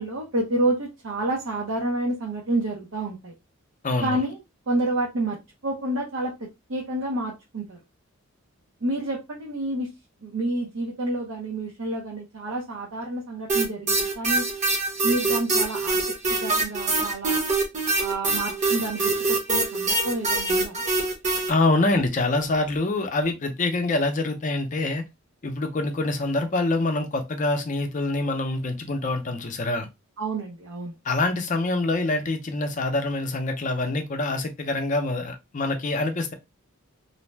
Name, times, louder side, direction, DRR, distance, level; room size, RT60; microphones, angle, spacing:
voice 1, 0.0-3.3 4.0-4.4 4.7-5.4 5.6-6.3 6.7-7.8 8.8-9.9 10.2-14.5 15.0-16.0 16.3-17.4 18.0-20.8 30.2-31.0, right 1 dB, 70° right, 0.6 m, -29 dB
voice 2, 3.8-4.2 21.5-25.0 25.4-29.9 31.0-36.3, left 2 dB, 35° left, 0.5 m, -25 dB
sound 1, 13.5-21.5, right 3 dB, 35° right, 0.7 m, -24 dB
2.6 x 2.1 x 3.2 m
head